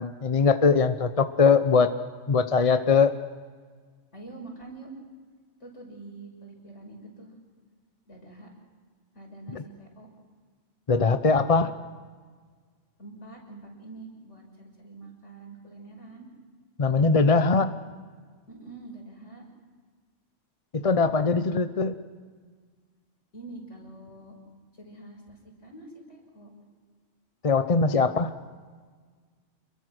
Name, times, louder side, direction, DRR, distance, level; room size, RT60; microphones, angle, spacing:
voice 1, 0.0-1.9 2.3-3.1 9.5-9.6 10.9-11.7 16.8-17.8 20.7-22.0 27.4-28.3, left 4 dB, 35° left, 10 dB, 0.8 m, -21 dB
voice 2, 4.1-4.9 5.6-7.3 8.0-8.5 9.1-10.1 13.0-16.3 18.5-19.4 23.3-24.3 24.7-26.5, right 2 dB, 75° left, 0 dB, 6.6 m, -45 dB
28.5 x 22.0 x 6.3 m, 1.5 s
omnidirectional pair, 1.3 m